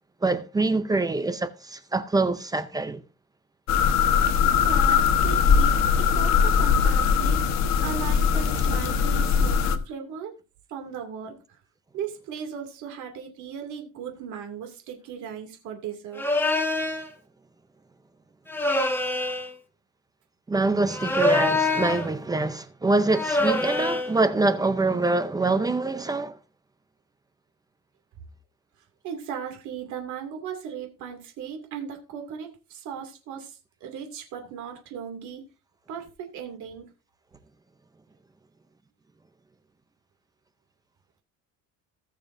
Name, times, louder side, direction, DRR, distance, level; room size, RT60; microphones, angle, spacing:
voice 1, 0.2-3.0 20.5-26.4, right 3 dB, 15° right, 0.5 m, -25 dB
sound 1, 3.7-9.8, left 6 dB, 60° left, 1.2 m, -21 dB
voice 2, 4.4-7.5 7.8-10.3 10.7-11.4 11.9-16.2 29.0-35.5 35.9-36.9, right 7 dB, 70° right, 2.5 m, -37 dB
sound 2, 16.2-17.1 18.5-19.5 20.9-22.1 23.1-24.1, left 2 dB, 5° left, 1.2 m, -25 dB
19.0 x 7.1 x 2.6 m
cardioid pair, 180°, 30 cm